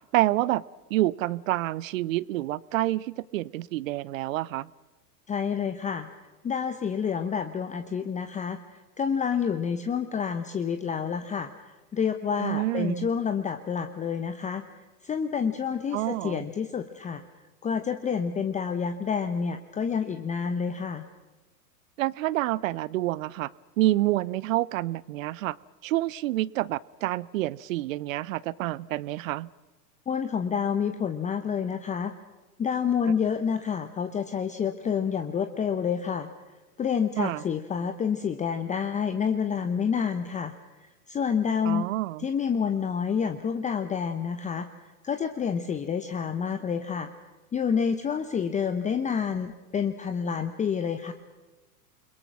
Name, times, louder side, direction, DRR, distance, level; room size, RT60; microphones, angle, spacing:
voice 1, 0.1-0.6 0.9-4.7 12.4-13.1 15.9-16.4 22.0-23.5 23.8-25.6 25.8-29.5 37.2-37.4 41.6-42.3, right 16 dB, 55° right, 23 dB, 0.7 m, -28 dB
voice 2, 5.3-6.1 6.4-11.5 11.9-14.6 15.0-17.2 17.6-21.0 30.1-32.1 32.6-36.3 36.8-40.5 40.8-41.9 42.2-44.7 45.0-47.1 47.5-51.1, left 7 dB, 15° left, 9 dB, 0.9 m, -28 dB
29.0 x 22.0 x 6.2 m, 1.2 s
hypercardioid pair, 100°, 48 cm